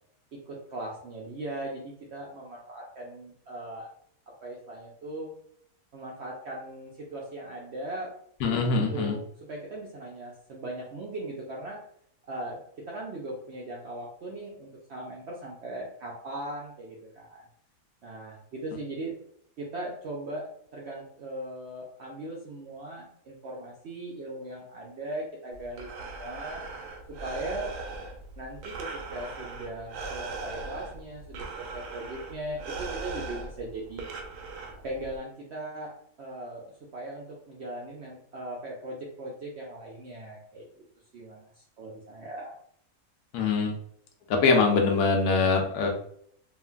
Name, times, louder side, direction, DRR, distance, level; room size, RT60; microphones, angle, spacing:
voice 1, 0.3-3.9 4.3-5.3 5.9-8.1 8.7-9.2 9.5-11.8 12.3-12.6 12.8-17.4 18.0-19.2 19.6-26.6 27.2-27.7 28.4-34.0 34.8-40.7 41.1-42.6, right 1 dB, 70° right, -3 dB, 0.6 m, -39 dB
voice 2, 8.4-9.2 43.3-43.7 44.3-45.9, left 4 dB, 80° left, 2 dB, 1.1 m, -23 dB
Breathing, 25.5-35.2, right 3 dB, 85° right, 1.1 m, -39 dB
2.8 x 2.4 x 2.3 m, 0.67 s
omnidirectional pair, 1.6 m